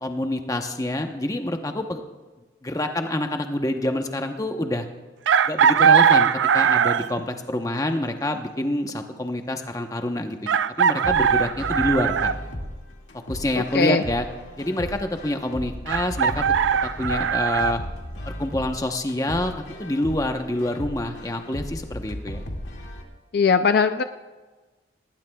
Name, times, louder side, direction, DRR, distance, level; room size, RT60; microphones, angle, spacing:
voice 1, 0.0-2.0 2.6-4.9 5.4-10.5 10.8-12.3 13.3-14.3 14.6-16.4 16.8-17.8 18.3-19.5 19.8-22.4, left 1 dB, 20° left, 5 dB, 0.9 m, -27 dB
Chicken rooster, 5.3-7.2 8.9-9.0 10.5-12.4 15.9-17.7, right 7 dB, 85° right, 0.4 m, -20 dB
sound 1, 11.0-23.0, equal, 85° left, 2.0 m, -36 dB
voice 2, 13.5-14.0 23.3-24.0, left 5 dB, 55° left, 9 dB, 0.4 m, -20 dB
18.5 x 18.5 x 2.3 m, 1.3 s
head